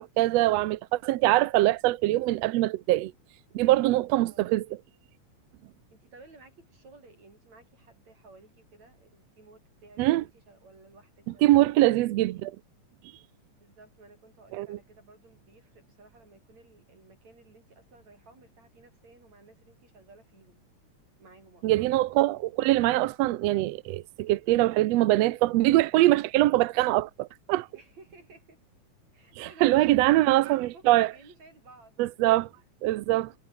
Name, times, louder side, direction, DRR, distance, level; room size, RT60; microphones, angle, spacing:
voice 1, 0.0-3.1 3.5-4.7 10.0-10.2 11.4-12.5 14.5-14.8 21.6-27.7 29.4-31.1 32.0-32.5 32.8-33.3, right 16 dB, 75° right, 1.6 m, -23 dB
voice 2, 4.3-4.6 5.9-11.7 13.6-20.6 21.2-21.7 27.7-28.6 29.1-32.0 33.3-33.4, right 3 dB, 60° right, 9.5 m, -55 dB
omnidirectional pair, 3.5 m